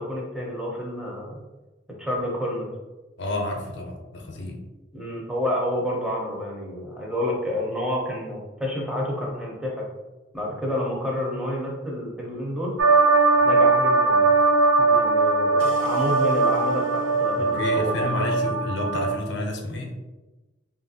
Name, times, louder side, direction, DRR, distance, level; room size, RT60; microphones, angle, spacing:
voice 1, 0.0-1.4 2.0-2.7 4.9-9.9 10.3-12.7 13.4-14.3 14.8-18.3, left 1 dB, 5° right, -3 dB, 0.6 m, -29 dB
voice 2, 3.2-4.6 17.4-19.9, left 1 dB, 65° left, 2 dB, 0.5 m, -30 dB
sound 1, 12.8-19.2, right 3 dB, 80° right, 0.5 m, -20 dB
3.0 x 2.4 x 2.6 m, 1.1 s
head